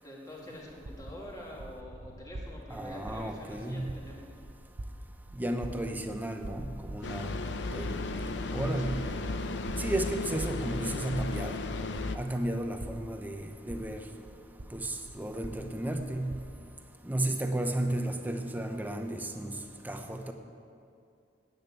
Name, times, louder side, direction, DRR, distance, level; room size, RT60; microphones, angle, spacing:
voice 1, 0.0-4.3 7.0-7.3 7.9-8.1 8.7-8.8 12.3-12.6, left 1 dB, 20° left, 2.3 m, -46 dB
sound 1, 0.6-16.8, right 1 dB, 65° right, 0.8 m, -46 dB
voice 2, 2.7-4.0 5.4-7.3 7.7-8.0 8.5-9.1 9.8-11.6 12.1-14.1 14.7-16.4 17.0-19.6 19.8-20.3, right 1 dB, 10° right, 0.8 m, -33 dB
sound 2, 7.0-12.2, left 3 dB, 70° left, 0.7 m, -34 dB
10.0 x 8.7 x 8.6 m
head